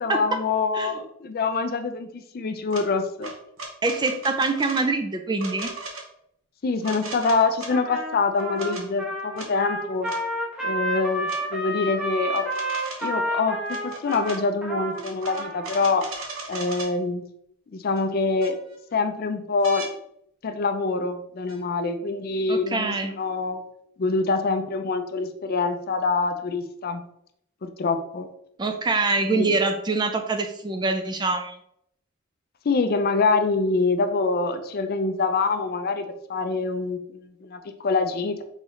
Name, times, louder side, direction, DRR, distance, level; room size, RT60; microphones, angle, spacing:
voice 1, 0.0-3.3 6.6-10.1 10.6-12.5 13.0-16.0 16.5-17.2 17.7-18.5 18.9-19.9 20.4-23.6 24.0-27.0 27.6-28.3 29.3-29.5 32.6-38.4, left 4 dB, 45° left, 8 dB, 0.4 m, -25 dB
sound 1, 2.7-2.8 3.2-4.9 5.4-6.1 6.8-7.7 8.4-8.8 9.4-9.5 10.1-10.2 11.3-11.4 12.3-13.2 13.7-14.4 14.9-16.9 18.0-18.1 18.4-18.9 19.6-19.9 21.5-21.6, right 3 dB, 65° right, 0.9 m, -37 dB
voice 2, 3.8-5.7 22.5-23.1 28.6-31.6, right 3 dB, 20° right, 6 dB, 0.4 m, -24 dB
Trumpet, 7.7-16.0, right 1 dB, 5° right, 0.9 m, -30 dB
4.0 x 3.9 x 3.1 m, 0.72 s
head